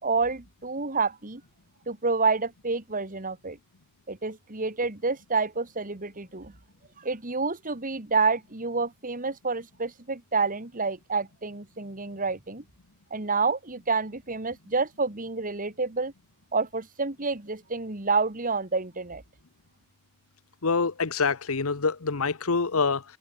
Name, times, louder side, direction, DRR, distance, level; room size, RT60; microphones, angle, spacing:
voice 1, 0.0-1.4 1.9-3.6 4.1-6.5 7.0-12.6 13.1-16.1 16.5-19.2, right 4 dB, 40° right, 2.4 m, -28 dB
voice 2, 20.6-23.0, left 4 dB, 70° left, 1.1 m, -26 dB
head